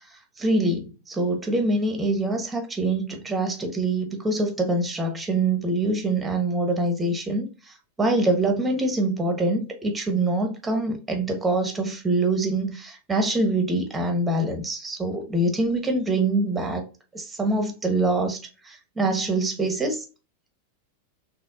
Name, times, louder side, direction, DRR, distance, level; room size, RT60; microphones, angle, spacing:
voice 1, 0.4-7.5 8.0-16.8 17.1-18.4 18.7-20.0, right 2 dB, 15° right, 1.0 m, -24 dB
4.4 x 3.3 x 2.3 m
figure-of-eight pair, 90°, 0 cm